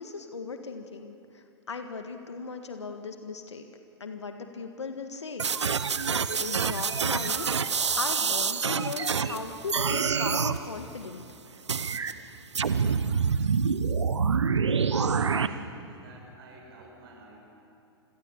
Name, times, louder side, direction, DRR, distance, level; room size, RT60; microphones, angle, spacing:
voice 1, 0.0-3.7 4.0-5.5 6.0-6.1 6.4-7.5 8.0-11.2, left 4 dB, 85° left, 6 dB, 1.7 m, -37 dB
sound 1, 5.4-9.4 9.7-10.6 11.7-12.1 12.5-15.5, right 6 dB, 85° right, 1.1 m, -26 dB
voice 2, 14.6-17.4, right 1 dB, 55° right, 0 dB, 6.7 m, -48 dB
27.5 x 22.0 x 7.2 m, 2.8 s
hypercardioid pair, 115°, 14 cm